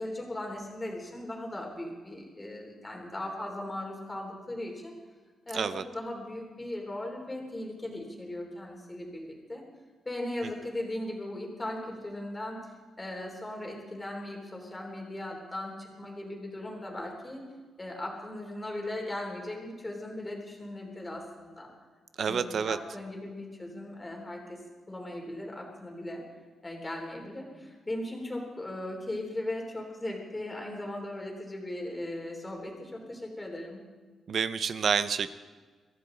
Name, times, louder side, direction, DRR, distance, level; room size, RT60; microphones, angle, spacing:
voice 1, 0.0-4.9 5.5-9.7 10.0-12.6 13.0-17.5 17.8-21.7 22.3-24.6 24.9-26.2 26.6-33.8, left 1 dB, 15° left, 1 dB, 3.4 m, -38 dB
voice 2, 5.5-5.8 22.2-22.8 34.3-35.3, right 6 dB, 45° right, 12 dB, 0.6 m, -28 dB
23.5 x 15.5 x 3.9 m, 1.4 s
wide cardioid pair, 170°, 0 cm